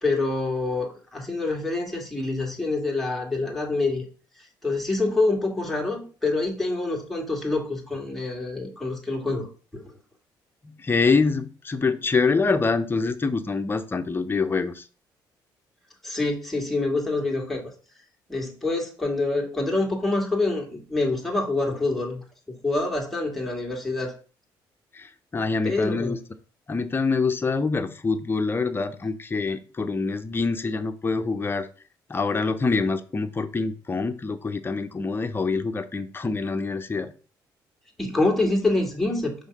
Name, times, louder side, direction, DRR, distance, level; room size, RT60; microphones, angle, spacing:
voice 1, 0.0-4.0 4.6-9.8 16.0-17.7 18.3-24.1 25.6-26.2 38.0-39.3, left 2 dB, ahead, -1 dB, 2.2 m, -26 dB
voice 2, 10.6-14.8 24.9-26.2 26.7-31.7 32.1-37.1, left 4 dB, 25° left, 8 dB, 0.8 m, -25 dB
5.5 x 3.7 x 5.4 m, 0.38 s
cardioid pair, 85°, 8 cm